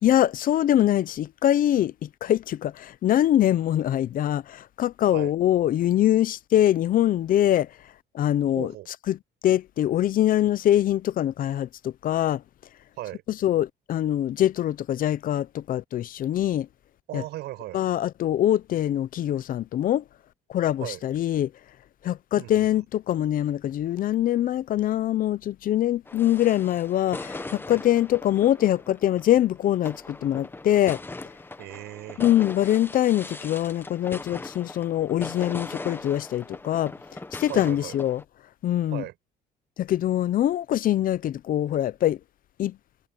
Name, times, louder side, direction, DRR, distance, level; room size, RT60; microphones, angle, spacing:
voice 1, 0.0-7.7 8.1-8.7 9.1-9.2 9.4-12.4 13.3-16.7 17.1-17.2 17.7-20.0 20.5-21.5 22.0-31.0 32.2-36.9 37.3-38.2 38.6-39.0 39.8-42.2 42.6-42.8, left 12 dB, 55° left, 0.7 m, -23 dB
voice 2, 8.6-8.9 13.0-13.2 17.1-17.8 20.8-21.0 22.4-22.8 31.6-32.2 37.5-38.0 38.9-39.1, right 16 dB, 80° right, 6.0 m, -37 dB
sound 1, 26.0-38.2, left 2 dB, 10° left, 1.2 m, -40 dB
cardioid pair, 110°, 17 cm